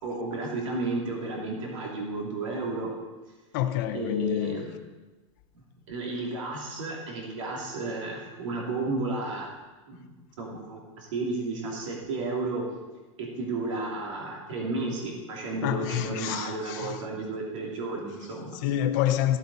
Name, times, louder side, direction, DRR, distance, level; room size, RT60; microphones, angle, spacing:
voice 1, 0.0-2.9 3.9-4.7 5.5-9.5 9.9-10.1 10.4-12.6 13.2-18.6, right 2 dB, 75° right, 3.0 m, -32 dB
voice 2, 3.5-4.6 15.6-16.9 18.6-19.4, left 11 dB, 40° left, 0.7 m, -27 dB
14.5 x 7.9 x 4.2 m
supercardioid pair, 180°, 16 cm